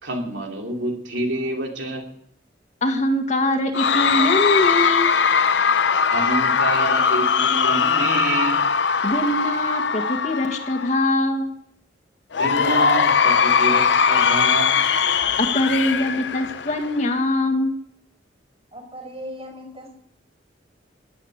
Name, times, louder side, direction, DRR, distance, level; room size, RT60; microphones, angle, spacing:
voice 1, 0.0-2.1 6.1-8.6 12.4-14.8, right 2 dB, 90° right, 2 dB, 2.8 m, -27 dB
voice 2, 2.8-5.2 9.0-11.5 15.4-17.8, left 1 dB, 40° left, 5 dB, 1.9 m, -22 dB
Cheering / Crowd, 3.7-11.1 12.3-17.1, left 6 dB, 70° left, 0.7 m, -20 dB
voice 3, 18.7-19.9, equal, 35° right, 4 dB, 5.3 m, -37 dB
17.0 x 8.4 x 8.1 m, 0.70 s
head